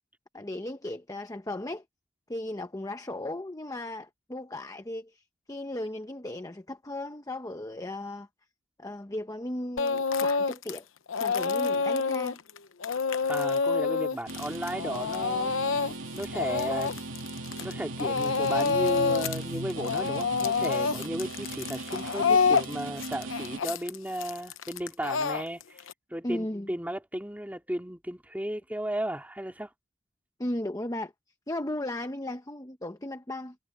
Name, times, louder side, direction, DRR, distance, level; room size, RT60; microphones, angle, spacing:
voice 1, 0.3-1.8 2.3-5.2 5.5-8.3 8.8-10.8 11.2-12.4 25.2-25.3 26.2-26.7 30.4-31.1 31.5-33.6, left 1 dB, 20° left, 0.9 m, -36 dB
Speech / Crying sobbing, 9.8-10.8 11.1-17.7 18.0-19.4 19.7-25.9, left 5 dB, 85° left, 0.9 m, -27 dB
voice 2, 13.3-15.5 16.1-16.9 17.6-25.8 26.1-29.7, right 1 dB, 10° right, 2.6 m, -34 dB
sound 1, 14.3-23.6, right 2 dB, 80° right, 3.1 m, -38 dB
head